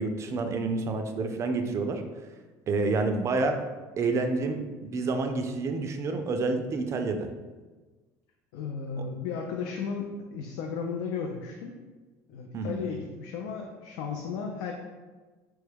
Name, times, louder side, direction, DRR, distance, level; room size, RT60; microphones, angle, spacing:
voice 1, 0.0-2.0 2.7-3.6 4.0-7.3 12.5-12.8, right 3 dB, 35° right, 6 dB, 0.3 m, -28 dB
voice 2, 8.5-11.7 12.3-14.7, left 5 dB, 80° left, 2 dB, 0.3 m, -34 dB
3.0 x 2.2 x 3.3 m, 1.3 s
supercardioid pair, 110°, 9 cm